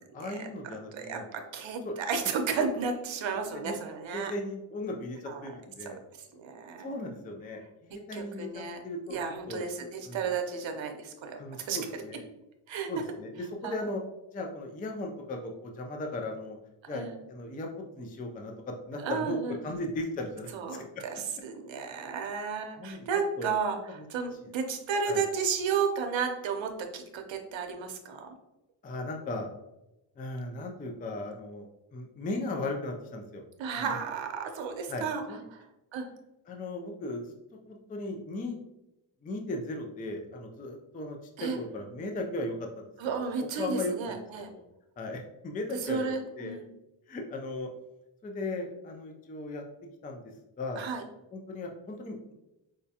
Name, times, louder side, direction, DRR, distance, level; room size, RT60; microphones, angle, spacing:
voice 1, 0.0-1.3 1.8-1.9 3.6-3.8 4.1-6.0 6.8-8.5 8.8-9.2 9.5-9.6 10.1-10.3 11.4-12.2 12.9-14.0 14.3-16.6 16.9-18.5 18.9-19.4 19.6-20.8 22.8-23.1 23.4-23.5 24.0-24.1 25.1-25.2 28.8-29.5 30.2-33.4 33.7-34.0 34.9-35.5 36.5-37.3 37.7-38.6 39.2-43.2 43.6-44.2 44.5-44.6 45.0-46.1 46.4-46.6 47.1-47.7 48.2-49.6 50.0-50.2 50.6-50.8 51.3-52.3, left 2 dB, 20° left, 2 dB, 0.3 m, -37 dB
voice 2, 0.9-4.3 5.3-5.5 5.8-5.9 6.3-7.0 8.1-8.8 9.1-12.0 12.7-12.9 13.6-13.8 16.9-17.2 19.0-19.6 20.5-23.8 24.1-28.3 33.6-35.2 35.5-35.6 35.9-36.1 41.4-41.6 43.0-44.5 45.8-46.7 50.8-51.0, right 5 dB, 65° right, 4 dB, 0.7 m, -33 dB
4.8 x 2.2 x 2.7 m, 0.92 s
cardioid pair, 105°, 50 cm